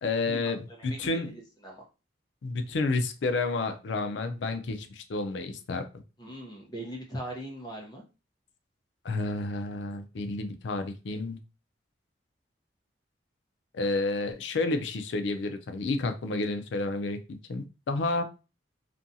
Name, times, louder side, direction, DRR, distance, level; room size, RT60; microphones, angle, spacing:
voice 1, 0.0-1.3 2.4-5.9 9.0-11.4 13.7-18.2, left 3 dB, 80° left, 0.4 m, -30 dB
voice 2, 0.9-1.8 6.2-8.0, right 1 dB, 20° left, 0.7 m, -40 dB
2.5 x 2.3 x 2.6 m
head